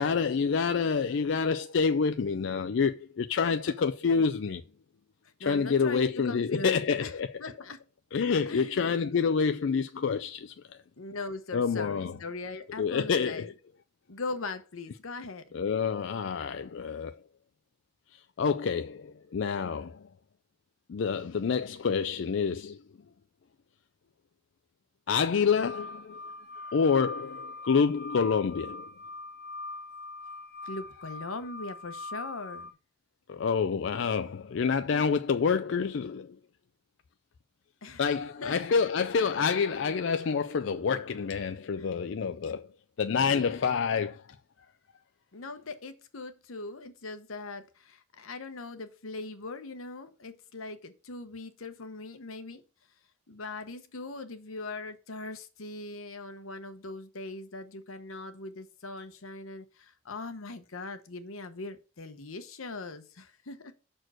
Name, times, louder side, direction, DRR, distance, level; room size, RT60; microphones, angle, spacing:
voice 1, 0.0-4.6 5.4-7.3 8.1-10.5 11.5-12.1 12.8-13.5 15.5-17.1 18.4-20.0 20.9-22.8 25.1-26.2 26.7-28.9 33.3-36.4 38.0-42.7 43.0-44.2, left 5 dB, 65° left, 0.4 m, -27 dB
voice 2, 5.4-7.8 8.5-9.0 11.0-13.5 14.1-15.4 30.6-32.7 37.8-38.0 38.4-38.6 41.8-41.9 43.1-43.8 45.3-52.6 53.3-63.7, left 3 dB, 90° left, 1.0 m, -40 dB
sound 1, 25.6-32.7, left 2 dB, 50° left, 1.9 m, -42 dB
6.1 x 4.5 x 6.3 m
head